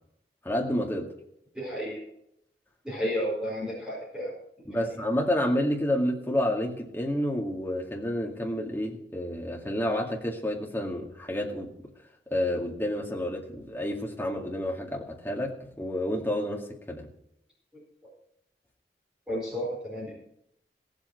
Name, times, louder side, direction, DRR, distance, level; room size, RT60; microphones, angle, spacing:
voice 1, 0.4-1.1 4.6-11.7 12.3-17.1, left 1 dB, 15° left, -1 dB, 2.1 m, -29 dB
voice 2, 1.5-2.0 2.8-4.3 19.3-20.1, equal, 5° right, -6 dB, 4.6 m, -32 dB
17.0 x 8.1 x 4.6 m, 0.76 s
head